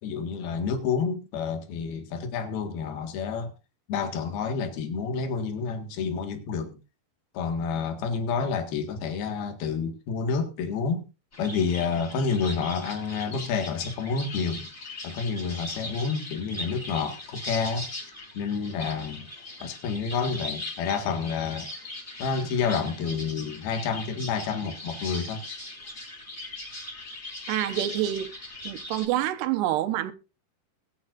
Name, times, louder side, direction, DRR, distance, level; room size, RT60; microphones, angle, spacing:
voice 1, 0.0-3.5 3.9-6.8 7.4-11.0 11.4-14.7 15.0-17.9 18.4-19.3 19.6-21.7 22.2-25.4, left 5 dB, 65° left, 3.6 m, -29 dB
sound 1, 11.3-29.1, left 1 dB, 20° left, 6.4 m, -40 dB
voice 2, 27.5-28.3 28.6-30.1, right 13 dB, 80° right, 3.1 m, -27 dB
22.5 x 9.5 x 2.6 m
omnidirectional pair, 4.8 m